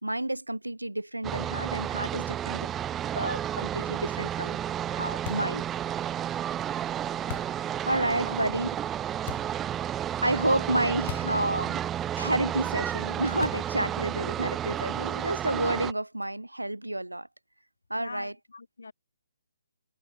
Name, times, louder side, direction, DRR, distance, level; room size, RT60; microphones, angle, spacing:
voice 1, 0.0-2.7 3.1-4.6 4.9-5.6 7.9-8.8 10.2-11.8 12.2-17.3 17.9-18.4, right 1 dB, 90° right, 0.5 m, -30 dB
sound 1, 1.2-15.9, right 10 dB, 15° right, 0.4 m, -32 dB
sound 2, 5.3-5.6 7.3-7.7 9.3-9.6 11.1-11.4 11.7-11.8 13.4-13.8, left 15 dB, 35° left, 1.3 m, -39 dB
sound 3, 9.2-14.5, left 7 dB, 10° left, 5.6 m, -60 dB
voice 2, 17.9-18.9, left 4 dB, 70° left, 0.4 m, -43 dB
figure-of-eight pair, 140°, 0 cm